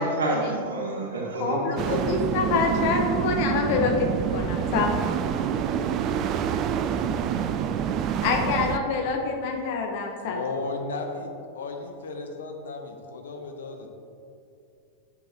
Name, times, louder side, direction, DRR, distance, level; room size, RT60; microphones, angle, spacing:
voice 1, 0.0-2.1, right 1 dB, 65° right, -1 dB, 1.5 m, -28 dB
voice 2, 1.4-5.1 8.2-10.4, left 4 dB, 50° left, 1 dB, 1.1 m, -26 dB
sound 1, 1.8-8.8, right 8 dB, 35° right, 0.3 m, -27 dB
voice 3, 10.2-13.9, left 3 dB, 65° left, 3 dB, 0.9 m, -34 dB
11.0 x 7.0 x 2.9 m, 2.6 s
figure-of-eight pair, 90°, 0 cm